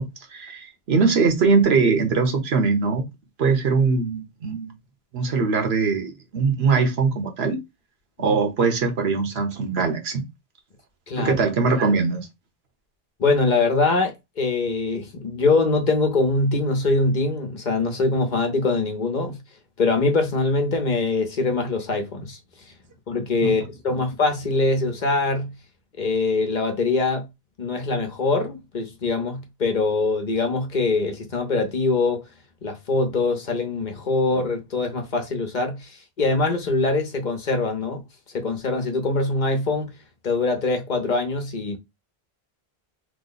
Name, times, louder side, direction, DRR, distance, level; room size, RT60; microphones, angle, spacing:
voice 1, 0.0-3.0 3.4-4.7 5.1-7.6 8.2-10.2 11.2-12.3 23.4-23.5, right 4 dB, 80° right, 1.1 m, -21 dB
voice 2, 11.1-11.4 13.2-19.4 19.8-22.7 23.1-25.5 26.0-27.3 27.6-32.3 32.6-38.0 38.3-40.0 40.2-41.8, left 3 dB, 50° left, 0.8 m, -23 dB
3.0 x 2.0 x 3.9 m
omnidirectional pair, 1.1 m